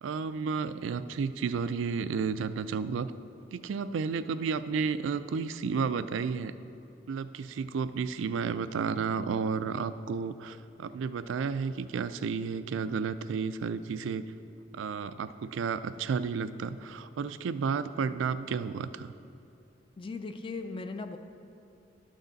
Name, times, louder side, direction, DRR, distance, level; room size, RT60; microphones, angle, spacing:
voice 1, 0.0-3.1 3.5-6.5 7.1-14.3 14.7-19.1, right 5 dB, 85° right, 13 dB, 0.3 m, -32 dB
voice 2, 20.0-21.2, left 3 dB, 25° left, 7 dB, 0.3 m, -38 dB
12.0 x 6.4 x 4.0 m, 2.7 s
head